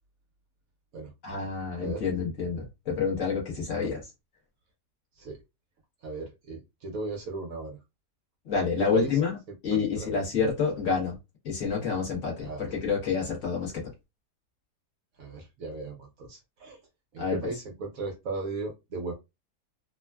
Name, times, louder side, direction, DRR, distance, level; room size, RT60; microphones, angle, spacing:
voice 1, 1.2-4.0 8.5-9.3 9.6-11.2 11.4-13.9 17.2-17.5, left 5 dB, 50° left, 1.1 m, -28 dB
voice 2, 6.0-7.8 8.8-9.2 9.7-10.2 12.4-12.7 13.6-13.7 15.2-16.8 17.1-19.1, right 3 dB, 60° right, 1.0 m, -36 dB
3.3 x 2.1 x 2.2 m
omnidirectional pair, 1.8 m